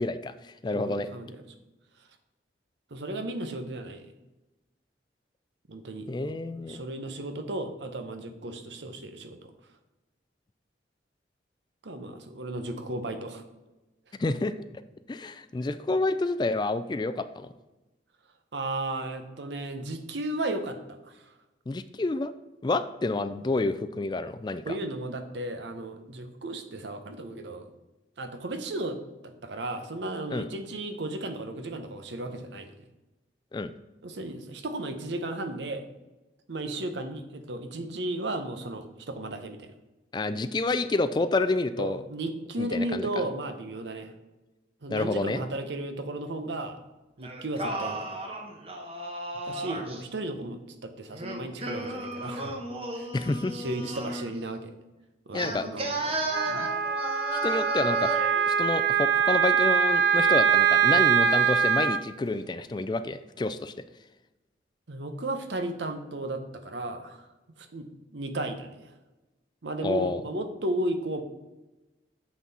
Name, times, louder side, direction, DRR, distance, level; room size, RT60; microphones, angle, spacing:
voice 1, 0.0-1.1 6.1-6.8 14.2-14.5 15.1-17.5 21.7-22.3 22.6-24.8 30.3-30.5 33.5-33.7 40.1-42.0 42.6-43.1 44.9-45.4 53.1-53.5 55.3-55.7 57.4-58.1 58.5-63.7 69.8-70.2, left 2 dB, 25° left, 12 dB, 0.3 m, -29 dB
voice 2, 0.7-1.4 2.9-4.1 5.7-9.4 11.8-13.4 18.5-20.8 21.0-21.3 24.7-27.7 28.2-29.0 29.2-32.8 34.0-35.8 36.5-39.7 41.8-44.1 44.8-46.8 47.2-48.0 49.5-52.6 52.9-53.1 53.5-54.7 55.3-56.7 64.9-67.3 67.6-69.0 69.6-71.2, right 2 dB, 80° right, 8 dB, 0.9 m, -34 dB
Singing, 47.2-50.0 51.1-54.3 55.3-58.4, right 1 dB, 35° right, 1.1 m, -34 dB
Wind instrument woodwind instrument, 56.3-62.0, right 7 dB, 65° right, 0.5 m, -23 dB
7.4 x 5.9 x 4.1 m, 1.1 s
head